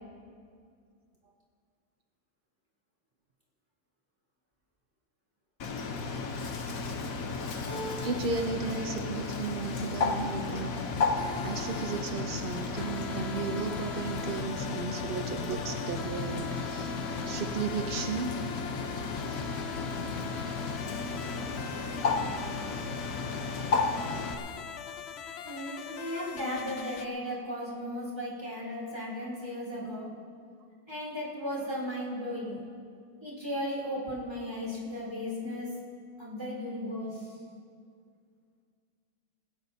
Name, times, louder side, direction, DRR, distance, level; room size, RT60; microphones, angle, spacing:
Bird, 5.6-24.3, left 4 dB, 55° left, 1.2 m, -34 dB
Keyboard (musical), 7.7-8.8 9.1-9.8, right 1 dB, 15° left, 4.6 m, -43 dB
voice 1, 8.0-10.7 11.1-17.0 17.3-18.4 20.5-20.6, right 5 dB, 70° right, 5 dB, 0.5 m, -35 dB
sound 1, 10.6-27.1, left 7 dB, 85° left, 0.5 m, -41 dB
voice 2, 25.4-30.1 30.9-32.6 33.2-35.7 36.2-37.2, equal, 15° right, -5 dB, 3.3 m, -36 dB
19.0 x 17.0 x 2.8 m, 2.2 s
omnidirectional pair, 1.9 m